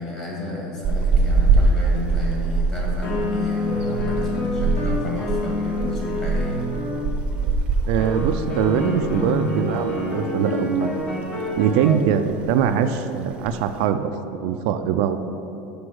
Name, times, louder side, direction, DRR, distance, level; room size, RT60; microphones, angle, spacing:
voice 1, 0.0-6.6, left 2 dB, 20° left, -4 dB, 1.8 m, -32 dB
sound 1, 0.8-9.4 9.6-9.8 10.2-11.1 11.4-11.8 12.0-12.1 12.3-12.8 13.3-13.8, right 3 dB, 30° right, 0.6 m, -23 dB
sound 2, 3.0-7.1 8.0-12.0, left 1 dB, 35° left, 1.2 m, -27 dB
voice 2, 7.9-11.0 11.6-15.2, right 8 dB, 65° right, 8 dB, 0.3 m, -22 dB
6.1 x 5.2 x 6.2 m, 2.9 s
cardioid pair, 160°, 4 cm